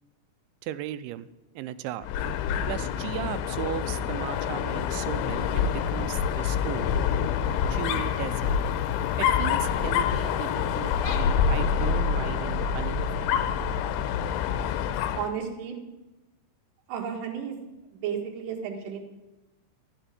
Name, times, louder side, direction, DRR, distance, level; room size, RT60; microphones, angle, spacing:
voice 1, 0.6-1.3 1.6-2.1 2.7-6.9 7.7-8.5 9.2-13.5, right 12 dB, 85° right, 13 dB, 2.9 m, -36 dB
Dog, 2.0-15.3, left 7 dB, 80° left, 3.1 m, -27 dB
voice 2, 15.1-15.8 16.9-17.6 17.8-19.0, right 7 dB, 55° right, 1 dB, 2.8 m, -33 dB
14.5 x 7.0 x 9.2 m, 1.0 s
omnidirectional pair, 5.5 m